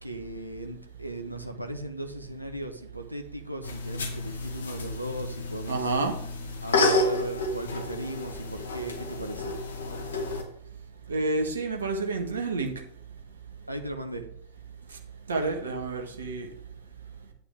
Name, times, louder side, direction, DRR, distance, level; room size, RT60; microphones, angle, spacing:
voice 1, 0.0-5.9 6.6-9.6 13.7-14.3, right 1 dB, 90° right, 5 dB, 1.1 m, -37 dB
sound 1, 3.6-10.4, left 2 dB, 65° left, 1.9 m, -30 dB
voice 2, 5.7-6.1 11.1-12.7 15.3-16.5, right 3 dB, 70° right, 3 dB, 1.6 m, -29 dB
9.3 x 8.8 x 3.6 m, 0.67 s
figure-of-eight pair, 90°, 0 cm